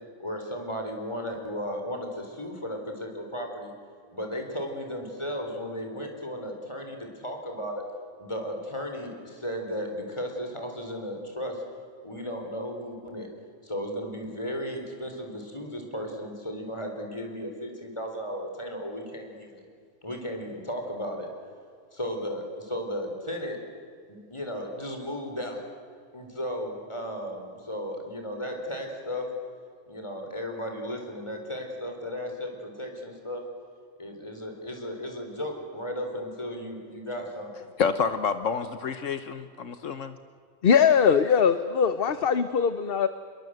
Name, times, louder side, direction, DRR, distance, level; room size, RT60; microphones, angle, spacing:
voice 1, 0.2-3.7 4.1-7.8 8.2-11.6 12.0-13.3 13.6-19.6 20.0-21.3 21.9-23.6 24.1-25.6 26.1-29.3 29.9-33.4 34.0-37.5, equal, 20° left, 3 dB, 4.4 m, -35 dB
voice 2, 37.8-40.2, left 6 dB, 75° left, 11 dB, 1.4 m, -28 dB
voice 3, 40.6-43.1, left 7 dB, 50° left, 12 dB, 1.0 m, -21 dB
27.5 x 21.5 x 7.9 m, 2.2 s
omnidirectional pair, 1.3 m